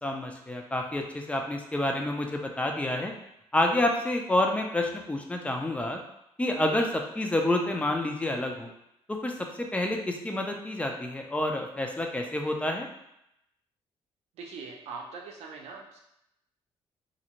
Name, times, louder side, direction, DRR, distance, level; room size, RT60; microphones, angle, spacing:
voice 1, 0.0-3.1 3.5-6.0 6.4-8.7 9.1-12.9, left 1 dB, 10° left, 2 dB, 0.4 m, -28 dB
voice 2, 14.3-16.0, right 4 dB, 80° right, 1 dB, 0.5 m, -42 dB
2.5 x 2.0 x 2.9 m, 0.81 s
cardioid pair, 90°, 11 cm